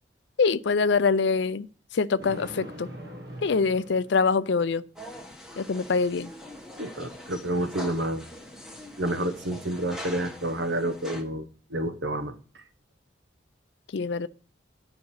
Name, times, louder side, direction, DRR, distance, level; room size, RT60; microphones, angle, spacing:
voice 1, 0.4-1.7 1.9-2.9 3.4-4.8 5.6-6.3 13.9-14.3, left 4 dB, 65° left, 0.5 m, -24 dB
Thunder, 2.2-4.7, equal, 55° right, 1.5 m, -42 dB
sound 1, 5.0-11.2, equal, 5° right, 1.3 m, -43 dB
voice 2, 6.8-8.2 9.0-12.6, right 1 dB, 70° right, 1.2 m, -29 dB
10.5 x 5.2 x 6.4 m
head